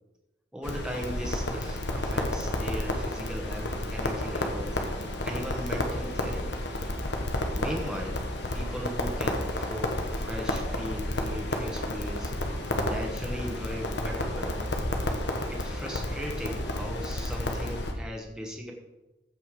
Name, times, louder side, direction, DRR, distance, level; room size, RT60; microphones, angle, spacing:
voice 1, 0.5-6.6 7.6-8.3 8.5-12.3 12.7-14.7 15.5-18.7, equal, 5° right, 0 dB, 1.1 m, -38 dB
Crackle, 0.6-17.9, left 1 dB, 65° left, 1.4 m, -31 dB
15.0 x 5.4 x 4.8 m, 1.1 s
head